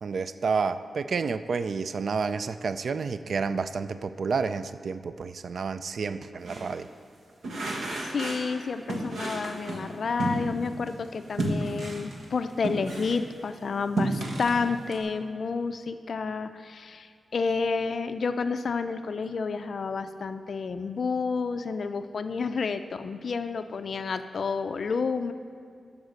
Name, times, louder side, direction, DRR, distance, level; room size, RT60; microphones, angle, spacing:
voice 1, 0.0-6.9, right 5 dB, 55° right, 12 dB, 0.3 m, -30 dB
sound 1, 6.4-6.7 7.4-8.5 8.9-10.9 11.4-13.3 13.7-15.0, right 2 dB, 85° right, 1.2 m, -32 dB
voice 2, 8.1-25.3, left 4 dB, 55° left, 9 dB, 0.4 m, -30 dB
13.0 x 4.8 x 6.5 m, 2.1 s
wide cardioid pair, 160°, 0 cm